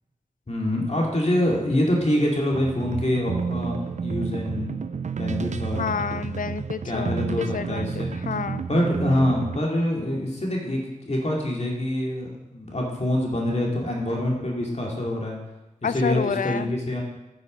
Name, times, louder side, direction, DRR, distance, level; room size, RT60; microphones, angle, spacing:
voice 1, 0.5-4.7 5.2-5.8 6.8-8.2 8.7-10.8 11.1-15.4 15.8-17.0, left 1 dB, 55° left, -2 dB, 2.5 m, -25 dB
sound 1, 2.5-9.6, right 5 dB, 60° right, 0.4 m, -30 dB
voice 2, 5.8-8.6 15.8-16.7, left 6 dB, 80° left, 14 dB, 0.4 m, -29 dB
9.6 x 6.8 x 5.2 m, 0.97 s
wide cardioid pair, 45°, 14 cm